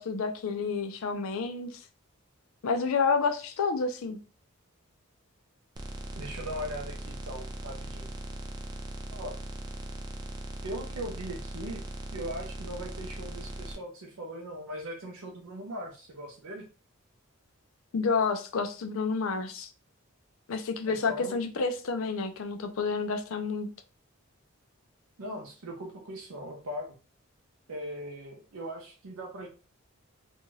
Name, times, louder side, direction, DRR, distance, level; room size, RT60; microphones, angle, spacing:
voice 1, 0.0-1.8 2.6-4.2 17.9-19.7 20.5-23.7, left 4 dB, 70° left, 0.4 m, -29 dB
sound 1, 5.8-13.8, right 1 dB, 20° right, 0.3 m, -39 dB
voice 2, 6.1-8.1 9.1-9.4 10.6-11.8 12.1-16.7 20.9-21.4 25.2-26.9 27.7-29.5, equal, 75° right, 0.6 m, -39 dB
2.5 x 2.3 x 3.1 m
head